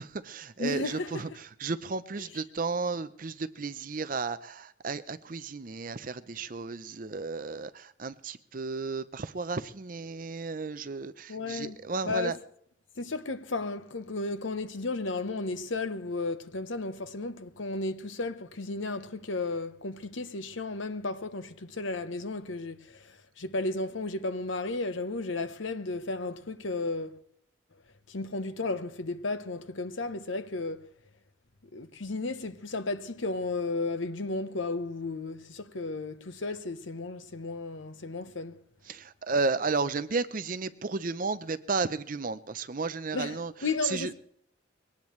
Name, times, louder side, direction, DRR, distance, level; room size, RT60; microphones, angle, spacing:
voice 1, 0.0-12.4 38.9-43.5 43.8-44.1, right 4 dB, 45° right, 0.6 m, -33 dB
voice 2, 0.6-1.2 11.3-12.4 13.0-27.2 28.1-30.9 31.7-38.6 43.1-44.1, left 3 dB, 75° left, 1.0 m, -34 dB
22.0 x 18.0 x 3.2 m
head